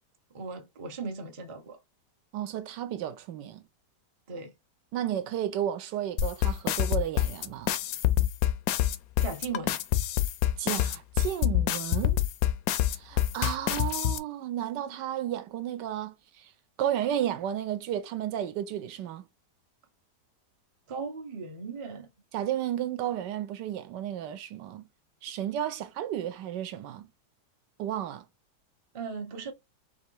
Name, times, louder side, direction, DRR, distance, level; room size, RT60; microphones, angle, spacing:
voice 1, 0.3-1.8 4.3-4.5 9.2-9.8 20.9-22.1 28.9-29.5, right 4 dB, 35° right, 0.5 m, -37 dB
voice 2, 2.3-3.6 4.9-7.7 10.6-12.2 12.9-16.5 16.8-19.2 22.3-24.9 25.2-27.1 27.8-28.2, right 11 dB, 85° right, 1.3 m, -33 dB
sound 1, 6.2-14.2, left 13 dB, 70° left, 0.9 m, -26 dB
3.4 x 3.0 x 4.5 m
omnidirectional pair, 1.9 m